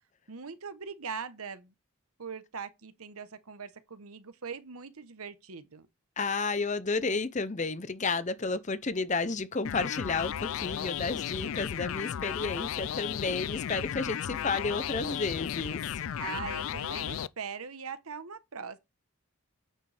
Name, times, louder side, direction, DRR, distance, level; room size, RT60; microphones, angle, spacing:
voice 1, 0.3-1.7 2.2-5.9 16.2-18.8, right 5 dB, 85° right, 1.0 m, -41 dB
voice 2, 6.2-15.8, left 4 dB, 35° left, 0.7 m, -32 dB
sound 1, 9.6-17.3, left 9 dB, 70° left, 0.4 m, -34 dB
9.1 x 6.4 x 3.4 m
head